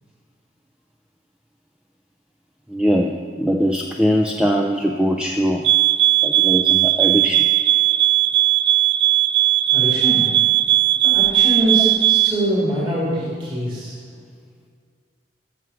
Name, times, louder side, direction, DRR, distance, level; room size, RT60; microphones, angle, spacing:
voice 1, 2.7-3.1 3.4-5.6 6.2-7.5, equal, 5° right, 1 dB, 0.4 m, -21 dB
sound 1, 5.6-12.4, right 15 dB, 75° right, 0.3 m, -17 dB
voice 2, 9.7-10.3 11.0-14.0, equal, 25° right, -8 dB, 2.8 m, -23 dB
14.5 x 6.2 x 5.7 m, 2.1 s
head